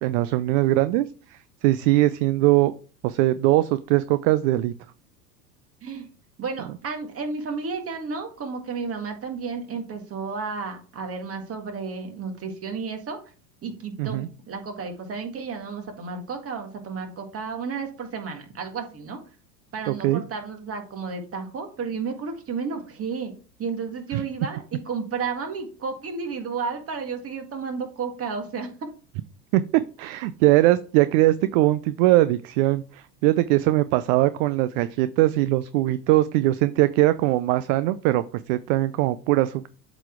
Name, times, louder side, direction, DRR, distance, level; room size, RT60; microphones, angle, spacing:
voice 1, 0.0-1.0 1.3-2.7 3.0-4.7 14.0-14.3 19.9-20.2 24.1-24.2 29.5-39.7, right 16 dB, 50° right, 14 dB, 0.5 m, -21 dB
voice 2, 6.4-13.2 13.6-19.2 19.7-23.3 23.6-28.7, right 5 dB, 30° right, 4 dB, 1.9 m, -32 dB
7.9 x 4.2 x 4.5 m, 0.39 s
hypercardioid pair, 95°, 48 cm